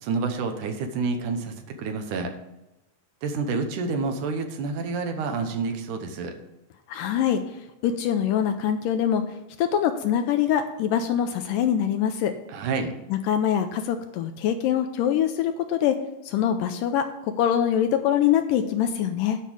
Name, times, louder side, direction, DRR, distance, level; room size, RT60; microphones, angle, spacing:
voice 1, 0.0-2.4 3.2-6.4 12.5-13.0, right 4 dB, 70° right, 6 dB, 2.3 m, -28 dB
voice 2, 6.9-9.2 9.6-12.3 13.1-16.0 16.3-19.4, left 9 dB, 80° left, 7 dB, 2.1 m, -24 dB
10.0 x 5.5 x 6.2 m, 0.97 s
omnidirectional pair, 4.2 m